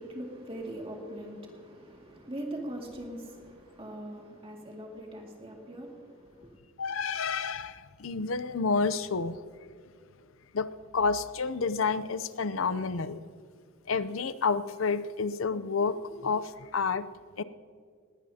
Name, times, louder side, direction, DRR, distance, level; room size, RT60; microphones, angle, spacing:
voice 1, 0.0-6.6, right 1 dB, 25° right, 2.2 m, -41 dB
voice 2, 6.8-9.5 10.5-13.2 13.9-17.1 17.4-17.5, left 4 dB, 70° left, 0.6 m, -30 dB
20.0 x 18.0 x 2.8 m
head